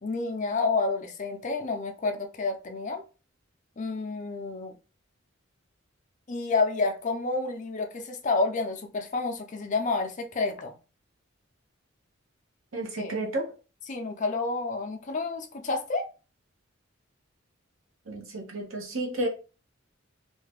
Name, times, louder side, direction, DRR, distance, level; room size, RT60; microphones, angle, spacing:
voice 1, 0.0-3.0 3.8-4.8 6.3-10.7 13.0-13.2 13.9-16.1, left 3 dB, 40° left, 0.5 m, -29 dB
voice 2, 12.7-13.5 18.1-19.3, right 2 dB, 85° right, 0.9 m, -31 dB
2.7 x 2.3 x 3.4 m
head